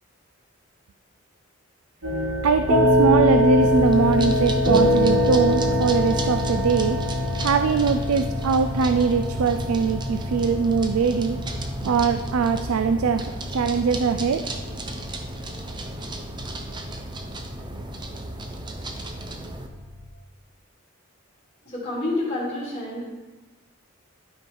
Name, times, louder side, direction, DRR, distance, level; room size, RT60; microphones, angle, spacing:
sound 1, 2.0-20.0, left 1 dB, 65° right, 2.7 m, -25 dB
voice 1, 2.4-7.0 7.4-11.4 11.8-14.5, right 5 dB, 90° right, 9 dB, 0.4 m, -22 dB
sound 2, 3.6-19.7, right 2 dB, 20° right, 0.6 m, -34 dB
voice 2, 21.6-23.1, left 2 dB, 25° left, -8 dB, 2.8 m, -28 dB
12.0 x 4.5 x 5.4 m, 1.2 s
head